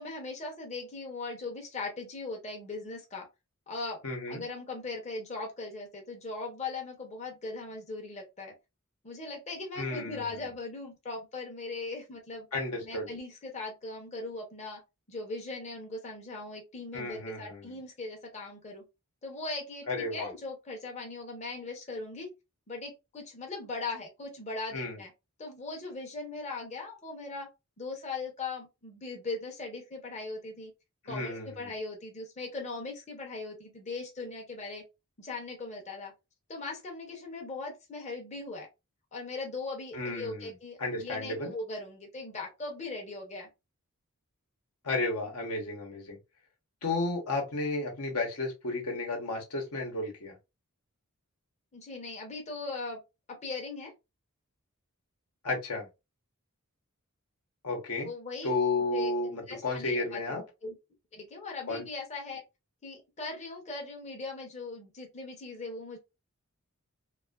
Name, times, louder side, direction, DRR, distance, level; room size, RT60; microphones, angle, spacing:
voice 1, 0.0-3.3 3.7-4.0 4.3-8.5 9.0-12.5 12.8-14.8 15.1-18.8 19.2-22.3 22.7-25.1 25.4-27.5 27.8-30.7 31.1-34.8 35.2-36.1 36.5-38.7 39.1-43.5 51.7-53.0 53.3-53.9 58.1-58.5 58.9-60.7 61.1-62.4 62.8-66.0, left 3 dB, 30° left, 0.7 m, -39 dB
voice 2, 4.0-4.4 9.8-10.3 12.5-13.1 16.9-17.7 19.9-20.3 24.7-25.0 31.0-31.5 39.9-40.5 40.8-41.5 44.8-46.2 46.8-50.3 55.4-55.9 57.6-58.1 58.4-60.4 61.7-61.8, left 2 dB, 80° left, 0.9 m, -32 dB
2.5 x 2.4 x 2.2 m
head